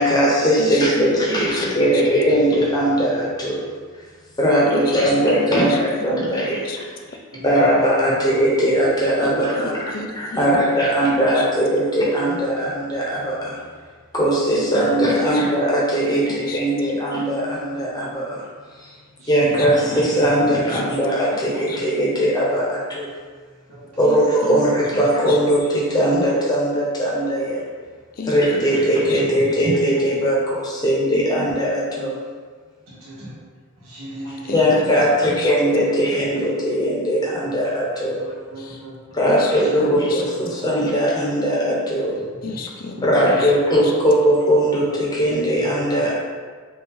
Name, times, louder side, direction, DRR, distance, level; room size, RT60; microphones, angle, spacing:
voice 1, 0.0-3.7 4.4-6.6 7.4-9.8 10.2-13.6 14.1-18.4 18.8-18.9 19.3-23.1 24.0-27.6 28.3-32.2 34.5-38.2 39.1-42.1 43.0-46.1, equal, 20° left, -5 dB, 0.9 m, -19 dB
voice 2, 0.6-1.1 1.5-1.7 1.9-2.0 4.7-5.8 6.1-6.8 9.2-10.7 11.3-11.5 11.8-11.9 14.5-15.4 16.0-16.1 16.5-16.6 19.5-19.9 20.7-20.8 21.3-21.8 24.1-24.2 24.4-25.4 28.1-28.6 29.1-29.2 34.3-35.5 38.6-38.8 39.3-39.5 39.8-40.2 40.6-40.7 42.4-43.1 43.4-43.5 43.8-43.9, left 4 dB, 40° left, 2 dB, 0.4 m, -34 dB
voice 3, 1.3-1.9 3.1-3.2 7.3-9.1 14.6-14.7 19.2-20.0 20.4-20.5 20.9-21.3 24.2-24.3 28.9-29.0 29.3-29.5 33.0-33.3 33.8-35.0 35.4-35.5 37.4-37.6 38.0-39.0 39.6-40.2 40.6-40.7 42.9-43.6 44.0-44.1 45.7-46.1, right 1 dB, 80° right, -8 dB, 1.3 m, -37 dB
4.9 x 2.6 x 3.5 m, 1.5 s
head